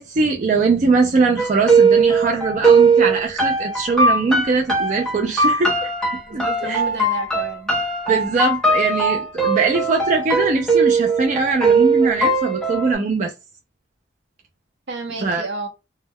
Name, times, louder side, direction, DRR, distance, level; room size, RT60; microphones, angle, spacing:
voice 1, 0.0-5.9 6.3-6.8 8.1-13.3 15.2-15.5, right 4 dB, 40° right, 0.4 m, -21 dB
sound 1, 1.4-12.9, right 4 dB, 5° left, 0.6 m, -19 dB
voice 2, 6.3-7.7 14.9-15.7, right 3 dB, 70° right, 0.7 m, -30 dB
2.2 x 2.1 x 3.4 m
head